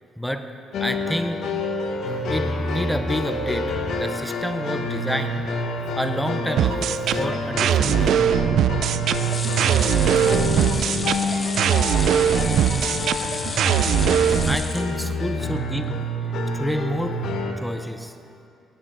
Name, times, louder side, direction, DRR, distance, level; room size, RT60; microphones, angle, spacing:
voice 1, 0.2-0.5 0.8-1.5 2.1-5.5 6.0-8.2 14.4-16.0 16.5-17.2 17.6-18.1, equal, ahead, 8 dB, 0.7 m, -29 dB
sound 1, 0.7-17.5, left 1 dB, 70° left, 1.1 m, -27 dB
sound 2, 6.6-14.6, right 9 dB, 75° right, 0.4 m, -21 dB
sound 3, 9.1-15.4 15.8-15.9 16.2-16.3, left 3 dB, 30° left, 1.1 m, -33 dB
voice 2, 9.5-14.5, right 2 dB, 25° right, 0 dB, 2.1 m, -47 dB
17.5 x 8.7 x 3.9 m, 2.6 s
cardioid pair, 90°, 0 cm